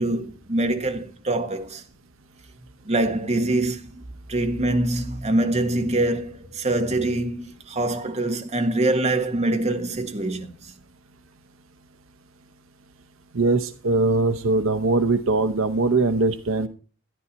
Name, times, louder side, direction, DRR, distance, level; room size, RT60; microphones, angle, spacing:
voice 1, 0.0-1.8 2.8-4.0 4.3-10.7, right 2 dB, 30° right, 1.5 m, -24 dB
voice 2, 13.3-16.7, right 3 dB, 70° right, 0.8 m, -21 dB
13.5 x 11.0 x 4.1 m
head